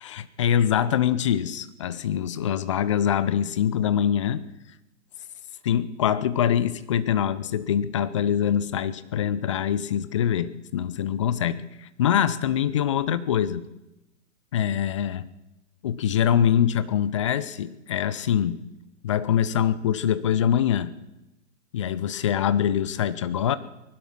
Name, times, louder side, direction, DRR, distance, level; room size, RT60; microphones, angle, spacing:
voice 1, 0.0-4.4 5.6-13.6 14.5-15.3 15.8-18.6 19.0-20.9 21.7-23.6, left 9 dB, 25° left, 16 dB, 0.5 m, -24 dB
20.0 x 12.0 x 6.0 m, 0.96 s
figure-of-eight pair, 130°, 39 cm